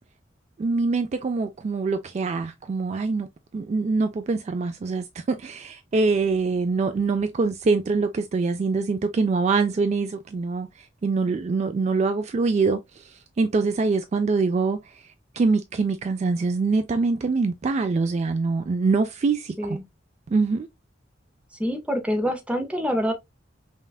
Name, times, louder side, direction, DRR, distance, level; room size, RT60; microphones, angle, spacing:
voice 1, 0.6-3.3 3.5-10.7 11.0-14.8 15.4-19.8 20.3-20.7, right 4 dB, 35° right, 0.3 m, -24 dB
voice 2, 21.6-23.1, equal, 5° right, 0.7 m, -26 dB
5.4 x 2.4 x 2.3 m
head